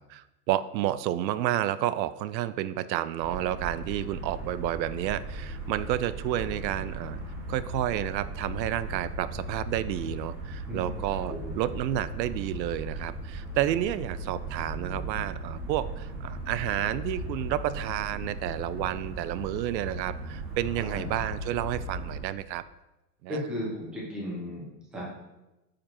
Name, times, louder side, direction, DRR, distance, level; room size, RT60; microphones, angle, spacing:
voice 1, 0.0-7.2 7.5-22.6 23.2-23.4, right 12 dB, 85° right, 15 dB, 0.6 m, -30 dB
sound 1, 3.2-22.2, right 1 dB, 30° right, 1.2 m, -37 dB
voice 2, 10.7-11.0 11.3-11.5 20.8-21.1 23.3-25.0, equal, ahead, -6 dB, 0.5 m, -35 dB
8.8 x 5.0 x 2.9 m, 1.0 s
supercardioid pair, 170°, 50 cm